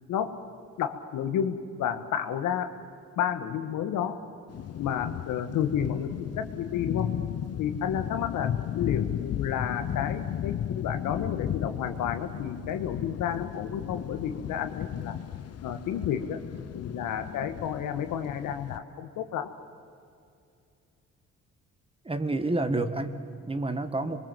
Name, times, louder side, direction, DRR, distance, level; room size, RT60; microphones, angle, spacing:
voice 1, 0.8-2.7 3.2-4.2 4.8-7.1 7.6-15.2 15.6-16.4 16.7-19.5 24.0-24.1, left 9 dB, 85° left, 8 dB, 1.8 m, -31 dB
sound 1, 4.5-18.8, left 10 dB, 55° left, 0.8 m, -34 dB
voice 2, 22.0-24.2, right 2 dB, 20° right, 9 dB, 1.8 m, -29 dB
27.0 x 23.0 x 7.6 m, 2.5 s
cardioid pair, 90°, 30 cm